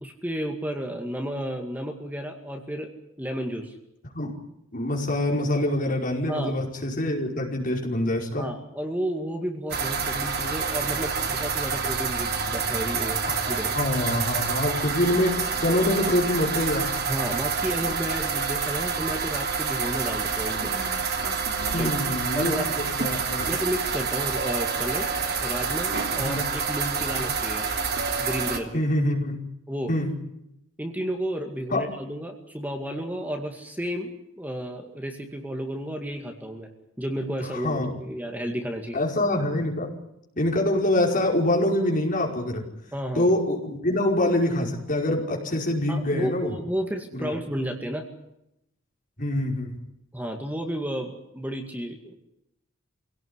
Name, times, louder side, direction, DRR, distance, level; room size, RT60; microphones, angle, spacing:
voice 1, 0.0-2.9 3.2-3.7 6.3-6.6 8.4-13.2 13.5-13.8 17.1-20.7 21.7-22.0 22.4-22.8 23.4-25.1 25.4-27.7 28.2-28.8 29.7-29.9 30.8-36.7 37.0-39.0 42.9-43.3 45.9-48.1 50.1-52.1, equal, 10° right, 3 dB, 2.2 m, -32 dB
voice 2, 4.7-8.4 13.3-16.9 21.7-23.5 26.2-26.4 27.1-27.2 28.7-29.4 29.9-30.1 31.7-31.9 37.4-38.0 38.9-39.9 40.4-42.6 43.1-46.6 47.1-47.4 49.2-49.7, left 1 dB, 40° left, 1 dB, 5.2 m, -25 dB
sound 1, 9.7-28.6, right 5 dB, 50° right, 2.9 m, -28 dB
25.5 x 17.5 x 9.7 m, 0.83 s
head